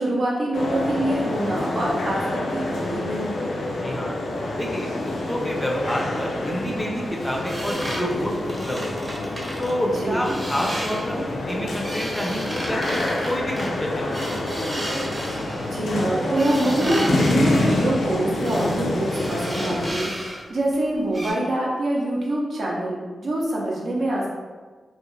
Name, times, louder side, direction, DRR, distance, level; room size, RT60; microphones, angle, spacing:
voice 1, 0.0-3.5 9.9-10.4 15.7-24.3, right 1 dB, 70° right, -4 dB, 0.6 m, -25 dB
sound 1, 0.5-19.9, left 2 dB, 80° left, 0.4 m, -27 dB
voice 2, 3.8-4.2 4.6-8.3 8.6-8.9 9.6-14.6, equal, 10° left, -1 dB, 0.4 m, -28 dB
sound 2, 7.4-9.7 10.2-11.1 11.5-15.7 16.3-17.3 18.4-18.8 19.1-20.4 20.7-20.8 21.1-21.3, equal, 25° right, 0.8 m, -33 dB
2.3 x 2.1 x 3.1 m, 1.4 s
cardioid pair, 75°, 0 cm